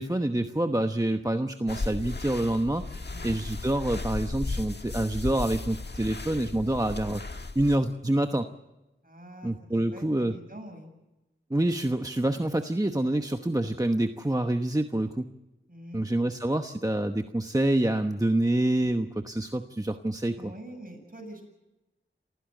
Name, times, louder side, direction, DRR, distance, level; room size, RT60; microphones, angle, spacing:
voice 1, 0.0-8.5 9.4-10.3 11.5-15.3 15.9-20.5, right 1 dB, 15° right, 6 dB, 1.0 m, -27 dB
sound 1, 1.7-7.8, left 3 dB, 55° left, 1.5 m, -35 dB
voice 2, 9.0-10.9 15.7-16.0 20.3-21.4, right 1 dB, 45° right, 3 dB, 7.6 m, -45 dB
27.5 x 15.5 x 7.9 m, 1.0 s
wide cardioid pair, 45°, 21 cm